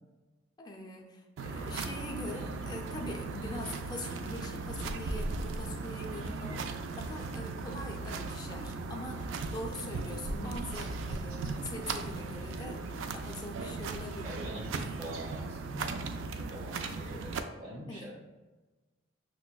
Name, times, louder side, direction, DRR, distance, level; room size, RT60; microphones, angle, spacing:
voice 1, 0.6-6.6 7.0-14.4 17.9-18.1, left 1 dB, 20° left, 0 dB, 0.5 m, -43 dB
sound 1, 1.4-17.4, right 3 dB, 80° right, 0.3 m, -37 dB
voice 2, 6.0-6.5 14.2-18.1, right 1 dB, 30° right, -4 dB, 1.1 m, -45 dB
5.9 x 2.1 x 2.2 m, 1.2 s
head